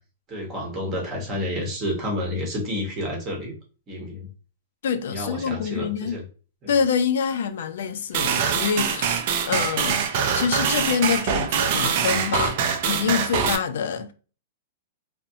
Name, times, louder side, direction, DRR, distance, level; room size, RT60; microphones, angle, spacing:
voice 1, 0.3-3.6 3.9-4.3 5.1-6.2 6.6-6.7, left 1 dB, 20° right, 0.8 m, -30 dB
voice 2, 4.8-6.2 6.7-14.1, left 7 dB, 70° left, 0.3 m, -26 dB
sound 1, 8.1-13.6, right 7 dB, 45° right, 0.3 m, -24 dB
2.6 x 2.0 x 2.6 m
supercardioid pair, 165°, 0 cm